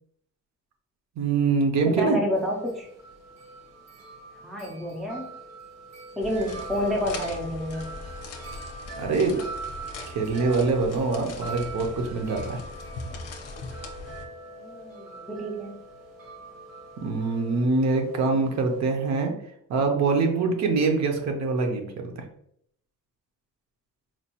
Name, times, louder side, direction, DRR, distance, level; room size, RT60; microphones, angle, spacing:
voice 1, 1.2-2.2 9.0-9.4 10.1-12.6 17.0-19.4 19.7-22.1, right 4 dB, 55° right, 3 dB, 0.6 m, -24 dB
voice 2, 1.9-2.9 4.4-5.3 6.2-7.9 14.5-15.8, left 1 dB, ahead, -1 dB, 0.4 m, -29 dB
Wind chime, 2.4-18.8, right 3 dB, 80° right, 1.1 m, -43 dB
sound 1, 6.2-14.3, left 3 dB, 50° left, 0.6 m, -40 dB
4.3 x 2.3 x 2.8 m, 0.70 s
cardioid pair, 175°, 33 cm